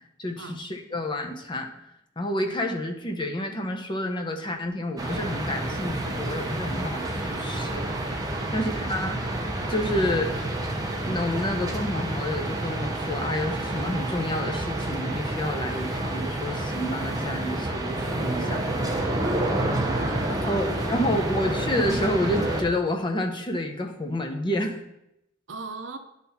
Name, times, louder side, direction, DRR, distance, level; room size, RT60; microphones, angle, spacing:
voice 1, 0.2-1.7 2.2-8.3 8.5-9.2 9.7-10.3 11.0-18.6 20.3-24.8, left 1 dB, 25° left, 3 dB, 0.8 m, -29 dB
sound 1, 5.0-22.6, right 1 dB, 20° right, 0.8 m, -29 dB
voice 2, 19.8-21.3 25.5-26.0, right 3 dB, 75° right, 8 dB, 0.7 m, -40 dB
10.0 x 4.1 x 4.2 m, 0.84 s
head